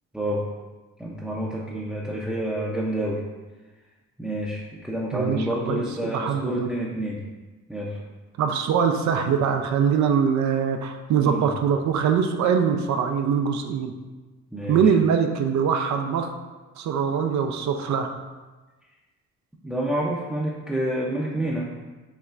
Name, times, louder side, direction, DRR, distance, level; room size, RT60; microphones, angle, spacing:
voice 1, 1.0-3.2 4.2-7.2 7.7-8.0 11.2-11.4 14.5-14.9 19.6-21.7, right 1 dB, 5° right, -6 dB, 0.5 m, -28 dB
voice 2, 5.1-6.7 8.4-13.9 14.7-16.3 16.8-18.1, right 7 dB, 65° right, 5 dB, 0.5 m, -23 dB
5.5 x 3.0 x 2.4 m, 1.2 s
cardioid pair, 90°, 30 cm